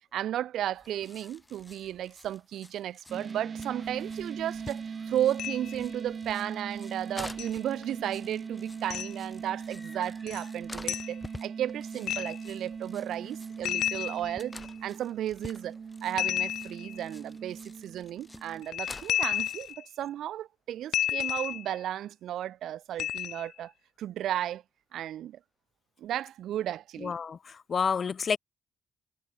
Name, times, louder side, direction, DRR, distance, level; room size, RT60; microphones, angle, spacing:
voice 1, 0.1-15.7 16.0-23.7 24.0-24.6 24.9-25.4 26.0-27.1, right 11 dB, 75° right, 1.1 m, -34 dB
sound 1, 0.7-19.7, left 2 dB, 15° left, 2.8 m, -49 dB
sound 2, 3.1-18.6, right 6 dB, 40° right, 1.4 m, -40 dB
sound 3, 5.4-5.8 7.4-7.5 8.9-9.1 10.3-10.4 10.9-11.1 12.1-12.5 13.6-14.7 16.2-17.0 18.6-19.8 20.9-21.8 23.0-23.5, left 12 dB, 75° left, 0.6 m, -31 dB
voice 2, 27.0-28.4, left 6 dB, 45° left, 2.1 m, -29 dB
cardioid pair, 90°, 0 cm